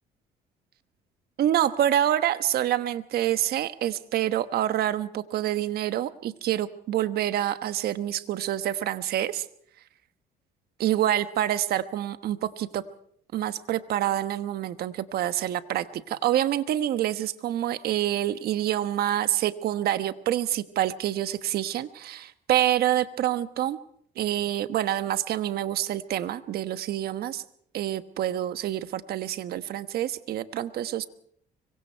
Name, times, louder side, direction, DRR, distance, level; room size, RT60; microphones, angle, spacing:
voice 1, 1.4-9.4 10.8-12.8 13.3-23.8 24.2-27.4 27.7-31.1, right 12 dB, 65° right, 11 dB, 1.2 m, -27 dB
25.0 x 23.5 x 4.6 m, 0.64 s
cardioid pair, 110°, 17 cm